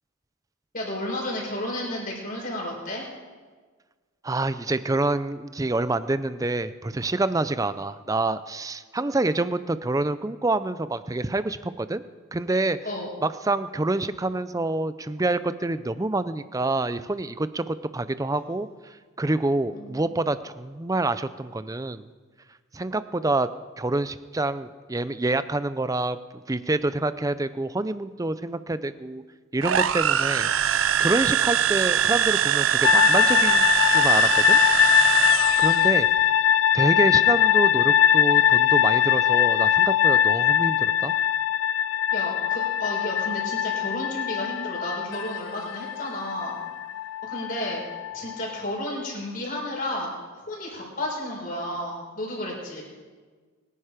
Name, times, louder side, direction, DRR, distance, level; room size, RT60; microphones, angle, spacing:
voice 1, 0.7-3.1 12.8-13.1 19.7-20.0 42.1-46.6 47.3-47.8 48.1-50.1 50.5-52.8, left 1 dB, 40° left, -2 dB, 5.1 m, -32 dB
voice 2, 4.2-12.0 12.3-12.8 13.2-22.1 22.7-23.5 23.8-29.2 29.5-34.6 35.6-36.4 36.7-41.1, right 2 dB, 15° right, 13 dB, 0.5 m, -27 dB
sound 1, 29.6-35.9, right 9 dB, 65° right, 0.5 m, -23 dB
sound 2, 32.8-48.6, left 10 dB, 65° left, 0.3 m, -21 dB
22.5 x 10.0 x 5.0 m, 1.4 s
head